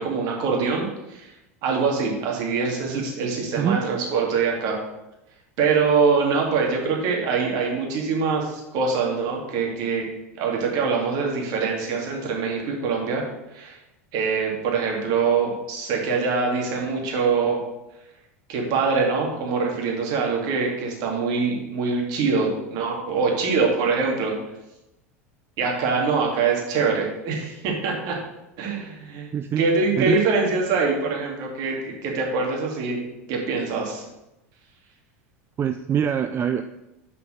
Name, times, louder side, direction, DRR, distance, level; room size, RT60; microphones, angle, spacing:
voice 1, 0.0-1.3 1.6-4.8 5.6-10.1 10.4-13.2 13.5-13.8 14.1-17.6 18.5-24.3 25.6-28.2 28.6-29.3 29.6-34.0, right 4 dB, 55° right, -1 dB, 2.5 m, -24 dB
voice 2, 29.3-29.6 30.0-30.2 35.6-36.6, right 8 dB, 30° right, 9 dB, 0.4 m, -24 dB
6.7 x 5.3 x 6.4 m, 0.94 s
hypercardioid pair, 85°, 8 cm